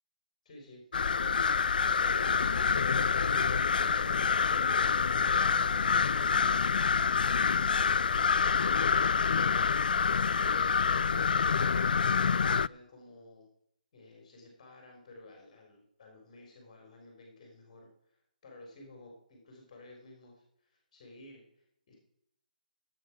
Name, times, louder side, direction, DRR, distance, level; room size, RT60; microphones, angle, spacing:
voice 1, 0.4-0.9 2.0-5.1 5.3-6.6 11.9-13.5 13.9-18.2 18.4-22.0, left 2 dB, 30° left, 0 dB, 4.0 m, -52 dB
sound 1, 0.9-12.7, left 6 dB, 70° left, 0.4 m, -27 dB
15.0 x 8.5 x 6.0 m, 0.73 s
hypercardioid pair, 170°, 5 cm